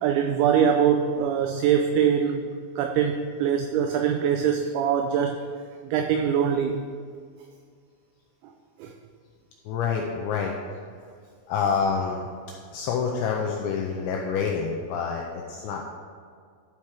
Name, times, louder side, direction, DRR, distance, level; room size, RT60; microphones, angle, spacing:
voice 1, 0.0-2.5 2.8-5.5 5.8-6.9 8.8-8.9, right 8 dB, 90° right, 5 dB, 2.6 m, -23 dB
voice 2, 9.7-10.5 11.5-12.3 12.7-15.8, left 6 dB, 90° left, 0 dB, 2.6 m, -27 dB
12.0 x 4.3 x 4.7 m, 2.1 s
omnidirectional pair, 5.8 m